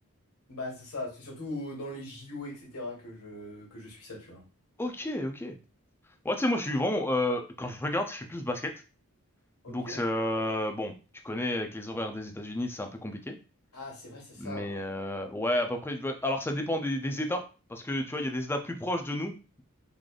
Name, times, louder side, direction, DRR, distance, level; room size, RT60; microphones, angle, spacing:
voice 1, 0.5-4.4 9.6-10.0 13.7-14.7, left 1 dB, 75° left, -1 dB, 1.6 m, -40 dB
voice 2, 4.8-5.6 6.2-8.7 9.7-10.9 11.2-13.4 14.4-17.4 17.7-19.6, left 1 dB, 10° left, 5 dB, 0.5 m, -31 dB
3.8 x 3.3 x 2.4 m, 0.33 s
head